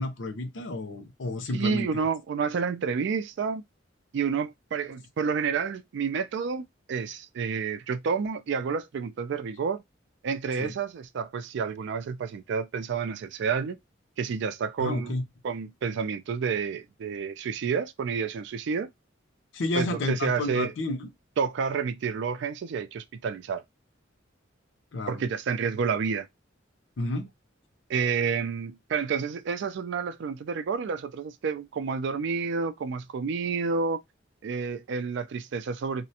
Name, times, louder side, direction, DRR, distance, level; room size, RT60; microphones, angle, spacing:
voice 1, 0.0-2.0 10.6-10.7 14.8-15.2 19.5-21.1 24.9-25.2 27.0-27.3, left 2 dB, 70° left, 0.6 m, -31 dB
voice 2, 1.5-3.6 4.1-9.8 10.2-13.8 14.2-15.1 15.4-18.9 19.7-20.7 21.4-23.6 25.1-26.3 27.9-34.0 34.4-36.1, right 5 dB, 65° right, 0.3 m, -29 dB
2.4 x 2.1 x 2.7 m
head